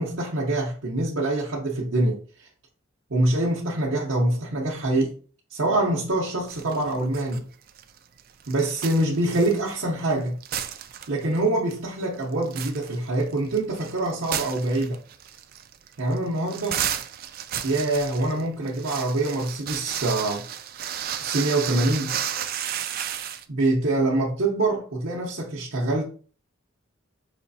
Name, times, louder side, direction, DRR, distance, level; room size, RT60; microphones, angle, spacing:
voice 1, 0.0-2.2 3.1-5.1 5.5-7.4 8.5-10.4 11.1-15.0 16.0-16.9 17.6-20.4 21.2-22.1 23.5-26.0, right 2 dB, 65° right, 0.8 m, -25 dB
sound 1, 6.5-7.4 7.7-10.1 10.4-11.4 11.7-11.8 12.2-23.4, right 10 dB, 45° right, 0.3 m, -33 dB
5.0 x 3.0 x 2.7 m
head